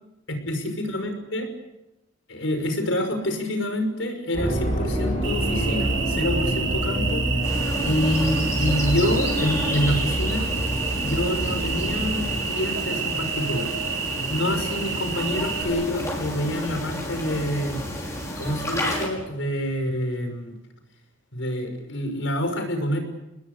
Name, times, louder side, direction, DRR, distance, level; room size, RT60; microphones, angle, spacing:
voice 1, 0.3-1.5 2.3-7.2 7.8-10.5 11.0-13.7 14.1-17.8 18.4-20.6 21.3-23.0, left 1 dB, 90° left, 6 dB, 5.9 m, -27 dB
sound 1, 4.3-12.4, right 1 dB, 40° left, 5.6 m, -27 dB
Cricket, 5.2-15.6, right 6 dB, 80° right, 4.6 m, -30 dB
sound 2, 7.4-19.1, left 1 dB, 15° left, 5.9 m, -31 dB
27.5 x 20.0 x 8.3 m, 0.94 s
head